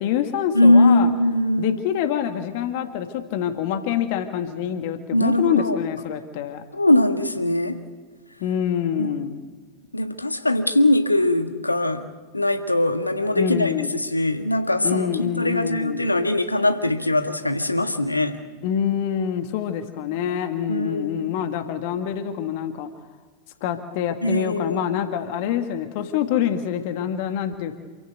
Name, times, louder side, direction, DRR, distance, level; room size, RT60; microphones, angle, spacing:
voice 1, 0.0-1.1 1.6-6.6 8.4-9.4 13.3-13.9 14.8-16.0 18.6-22.9 23.6-27.7, left 9 dB, 50° left, 8 dB, 1.8 m, -26 dB
voice 2, 0.5-1.8 5.1-5.8 6.7-7.8 9.0-9.1 9.9-12.1 12.3-18.4 20.7-21.3 24.2-24.8, left 1 dB, 85° left, 8 dB, 1.6 m, -21 dB
27.5 x 16.0 x 8.1 m, 1.5 s
figure-of-eight pair, 90°, 0 cm